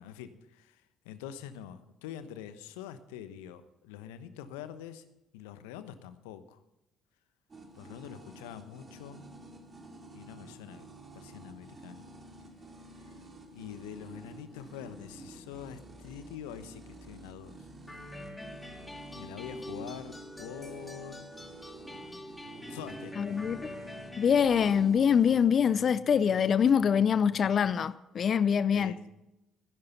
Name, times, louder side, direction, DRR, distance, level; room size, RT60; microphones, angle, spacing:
voice 1, 0.0-5.0 5.3-6.6 7.7-9.3 10.1-10.9 11.1-12.0 13.5-17.6 19.1-21.3 22.7-23.3 28.7-29.1, left 9 dB, 75° left, 1.0 m, -45 dB
sound 1, 7.5-25.4, right 2 dB, 35° right, 3.0 m, -50 dB
sound 2, 17.9-24.9, left 1 dB, 10° left, 3.2 m, -44 dB
sound 3, 22.4-27.4, right 6 dB, 75° right, 6.2 m, -56 dB
voice 2, 23.2-23.6 24.2-28.9, left 7 dB, 50° left, 0.6 m, -24 dB
16.0 x 11.0 x 5.6 m
hypercardioid pair, 50°, 0 cm